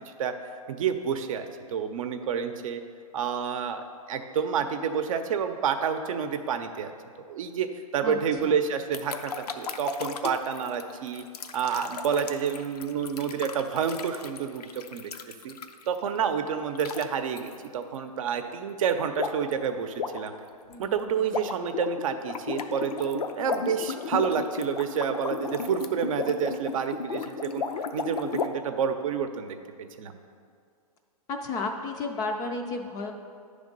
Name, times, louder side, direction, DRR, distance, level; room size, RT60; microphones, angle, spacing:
voice 1, 0.7-2.8 3.1-6.9 7.3-7.7 7.9-11.2 11.5-15.1 15.4-15.5 15.9-20.3 20.8-27.6 27.9-29.6 30.0-30.2, right 7 dB, 60° right, 7 dB, 0.6 m, -29 dB
voice 2, 8.0-8.6 20.7-21.0 31.3-33.1, left 3 dB, 20° left, 4 dB, 0.4 m, -33 dB
sound 1, 8.9-16.0 16.7-17.0 17.4-17.6 19.2-19.5 19.8-28.5, left 6 dB, 85° left, 0.6 m, -34 dB
9.5 x 3.5 x 5.2 m, 2.3 s
hypercardioid pair, 140°, 20 cm